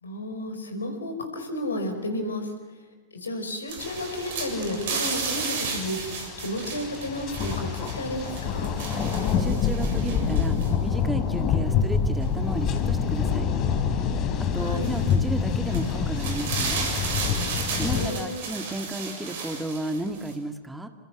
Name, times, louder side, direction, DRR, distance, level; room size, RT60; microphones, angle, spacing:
voice 1, 0.0-2.5 3.1-8.7 14.5-15.0 17.7-18.4, left 1 dB, 75° left, 7 dB, 5.4 m, -32 dB
sound 1, 3.7-10.7 12.2-12.3 14.8-15.2 15.7-20.3, right 5 dB, 55° right, 7.1 m, -34 dB
sound 2, 3.8-18.1, left 6 dB, 35° left, 3.4 m, -27 dB
voice 2, 9.4-10.6 10.8-13.5 14.5-16.9 17.8-20.9, right 1 dB, 5° right, 7 dB, 2.1 m, -33 dB
29.5 x 26.5 x 6.3 m, 1.4 s
figure-of-eight pair, 90°, 0 cm